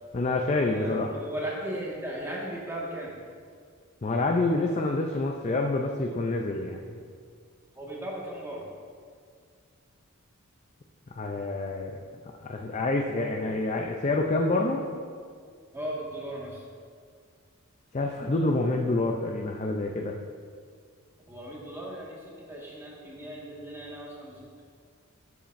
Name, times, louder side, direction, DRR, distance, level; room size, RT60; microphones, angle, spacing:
voice 1, 0.1-1.1 4.0-7.0 11.1-11.9 12.4-14.9 17.9-20.2, left 2 dB, 30° left, 2 dB, 0.5 m, -27 dB
voice 2, 0.7-3.1 7.8-8.6 15.7-16.6 21.3-22.2 22.5-24.4, right 1 dB, 10° right, -5 dB, 1.7 m, -36 dB
13.0 x 7.1 x 2.6 m, 2.1 s
head